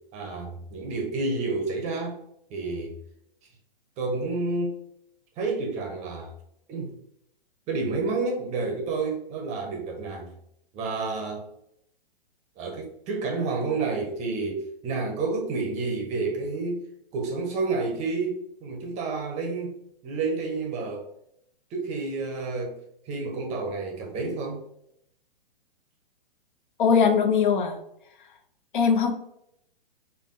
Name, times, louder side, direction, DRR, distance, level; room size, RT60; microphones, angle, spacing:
voice 1, 0.1-2.2 2.5-3.0 4.0-4.8 5.4-6.3 6.7-6.9 7.7-10.3 10.7-11.4 12.6-16.8 17.1-19.8 20.0-21.1 21.7-22.7 23.1-24.6, right 3 dB, 25° right, 2 dB, 0.7 m, -30 dB
voice 2, 26.8-27.8 28.7-29.1, left 6 dB, 55° left, 6 dB, 0.6 m, -20 dB
4.4 x 2.5 x 2.5 m, 0.75 s
figure-of-eight pair, 120°, 30 cm